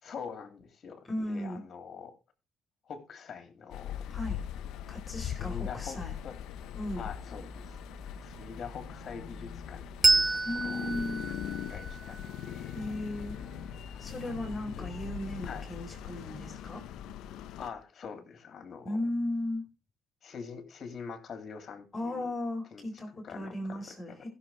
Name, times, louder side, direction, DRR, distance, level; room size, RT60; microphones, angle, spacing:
voice 1, 0.0-2.1 2.9-4.0 5.3-6.4 7.0-7.8 8.2-10.9 11.7-12.2 12.4-12.8 14.2-14.5 14.8-14.9 15.4-15.7 17.6-19.0 20.2-22.3 22.7-22.9 23.2-24.3, left 6 dB, 50° left, 2.7 m, -44 dB
voice 2, 1.1-1.6 4.1-4.4 4.9-6.1 6.8-7.1 10.4-11.2 12.7-13.4 14.0-16.8 18.8-19.6 21.9-24.3, left 1 dB, 30° left, 3.9 m, -36 dB
sound 1, 3.7-17.7, left 11 dB, 70° left, 0.6 m, -41 dB
sound 2, 6.1-17.8, equal, 15° left, 2.8 m, -51 dB
Bell, 10.0-13.1, right 3 dB, 30° right, 0.4 m, -29 dB
16.0 x 6.8 x 3.3 m
hypercardioid pair, 60°, 0 cm